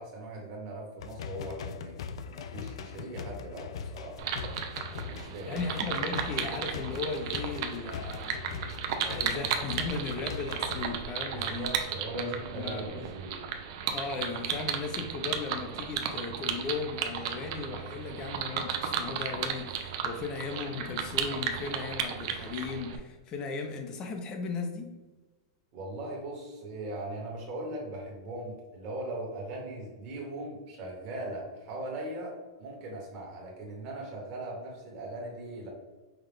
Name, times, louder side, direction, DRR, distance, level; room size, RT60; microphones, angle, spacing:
voice 1, 0.0-4.4 4.9-5.6 11.3-13.4 25.7-35.7, right 1 dB, 35° right, -2 dB, 1.5 m, -39 dB
sound 1, 1.0-10.8, left 6 dB, 75° left, 0.3 m, -41 dB
sound 2, 4.2-23.0, right 7 dB, 50° right, 0.5 m, -34 dB
voice 2, 5.5-8.3 8.7-11.7 12.1-13.0 13.9-24.9, left 4 dB, 25° left, 4 dB, 0.6 m, -36 dB
5.6 x 2.4 x 3.5 m, 1.2 s
supercardioid pair, 155°, 3 cm